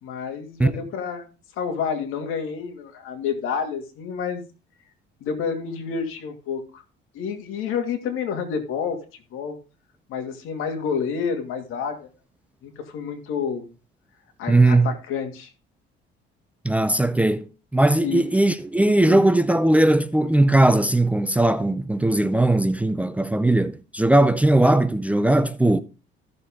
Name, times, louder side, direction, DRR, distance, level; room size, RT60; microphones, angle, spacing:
voice 1, 0.0-4.4 5.2-6.8 7.1-9.0 9.3-9.6 10.1-12.1 12.6-13.7 14.4-15.5 18.0-18.2 19.1-19.2, left 6 dB, 80° left, 2.5 m, -29 dB
voice 2, 14.5-14.9 16.6-25.8, right 1 dB, 5° right, 0.5 m, -19 dB
14.5 x 6.9 x 3.7 m
cardioid pair, 120°, 21 cm